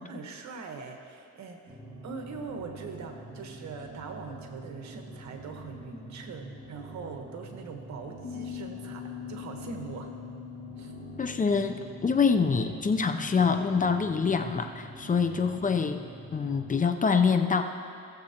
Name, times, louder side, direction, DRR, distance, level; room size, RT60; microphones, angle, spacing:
voice 1, 0.0-1.8 2.0-10.1 10.8-10.9 15.1-15.3, right 4 dB, 65° right, 3 dB, 1.3 m, -42 dB
sound 1, 1.7-16.8, right 2 dB, 20° right, 2.6 m, -45 dB
Bass guitar, 8.2-14.5, left 13 dB, 65° left, 2.1 m, -44 dB
voice 2, 11.2-16.0 16.3-17.6, left 5 dB, 25° left, 6 dB, 0.6 m, -25 dB
17.5 x 7.5 x 2.9 m, 2.5 s
cardioid pair, 90°, 30 cm